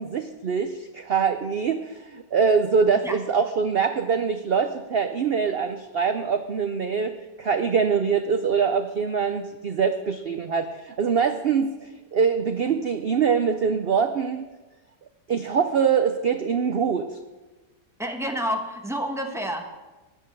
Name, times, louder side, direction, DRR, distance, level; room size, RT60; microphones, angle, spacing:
voice 1, 0.0-7.1 7.4-14.5 15.3-17.1, right 6 dB, 90° right, 8 dB, 0.5 m, -24 dB
voice 2, 18.0-19.6, equal, ahead, 4 dB, 0.8 m, -29 dB
10.5 x 8.8 x 6.7 m, 1.2 s
omnidirectional pair, 1.8 m